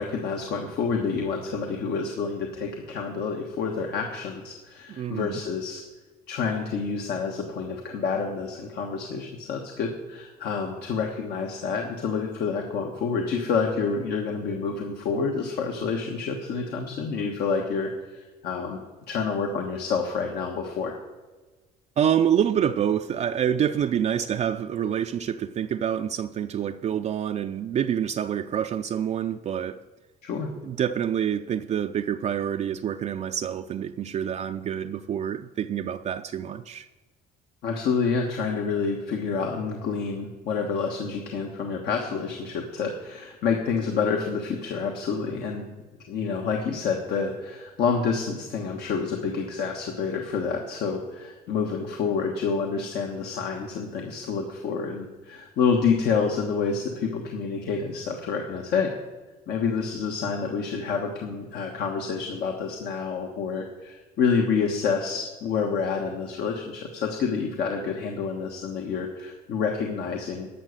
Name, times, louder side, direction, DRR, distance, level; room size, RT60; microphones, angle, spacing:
voice 1, 0.0-5.8 6.3-18.8 19.1-20.9 30.2-30.5 37.6-45.6 46.1-58.9 59.5-70.5, left 5 dB, 70° left, 2 dB, 1.3 m, -28 dB
voice 2, 4.9-5.4 22.0-29.8 30.6-36.9, right 9 dB, 40° right, 7 dB, 0.4 m, -27 dB
12.0 x 7.0 x 6.4 m, 1.3 s
cardioid pair, 110°, 17 cm